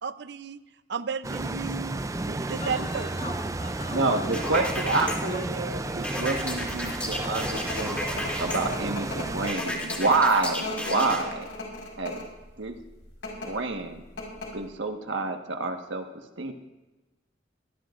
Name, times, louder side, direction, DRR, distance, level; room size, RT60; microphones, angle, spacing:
voice 1, 0.0-0.6 0.9-3.1, right 5 dB, 60° right, 13 dB, 0.6 m, -33 dB
sound 1, 1.2-9.5, right 2 dB, 15° right, 0.4 m, -32 dB
voice 2, 2.5-4.2 4.5-4.8 5.2-7.3, left 2 dB, 50° left, 0 dB, 3.2 m, -42 dB
voice 3, 3.9-8.1 8.4-11.5 12.0-12.2 12.6-12.7 13.4-14.0 14.5-16.1 16.4-16.5, right 3 dB, 80° right, 4 dB, 1.5 m, -28 dB
sound 2, 4.3-5.2 6.0-8.6 9.5-11.2, left 1 dB, 5° left, 2.7 m, -33 dB
sound 3, 6.9-12.4 13.1-13.5 13.9-14.0 14.2-14.7, left 2 dB, 75° left, 4.9 m, -36 dB
24.0 x 18.5 x 2.5 m, 1.1 s
head